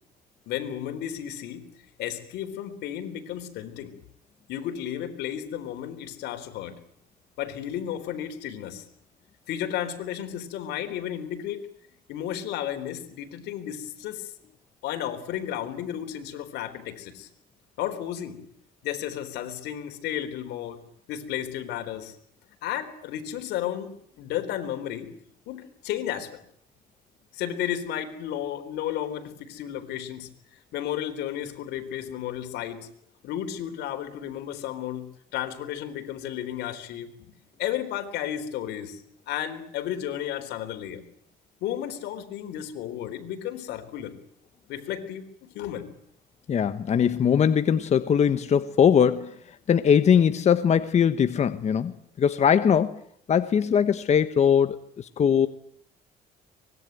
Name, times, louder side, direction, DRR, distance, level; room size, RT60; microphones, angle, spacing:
voice 1, 0.5-1.7 2.0-3.9 4.5-6.8 7.4-8.8 9.5-11.6 12.1-14.3 14.8-17.3 17.8-18.4 18.8-20.8 21.1-22.2 22.6-25.1 25.5-26.4 27.3-30.3 30.7-32.9 33.2-37.1 37.6-39.0 39.3-41.0 41.6-44.2 44.7-45.9, left 11 dB, 80° left, 7 dB, 4.0 m, -33 dB
voice 2, 46.5-53.0 53.3-55.5, left 8 dB, 40° left, 10 dB, 1.2 m, -21 dB
24.5 x 21.0 x 9.5 m, 0.67 s
cardioid pair, 110°, 17 cm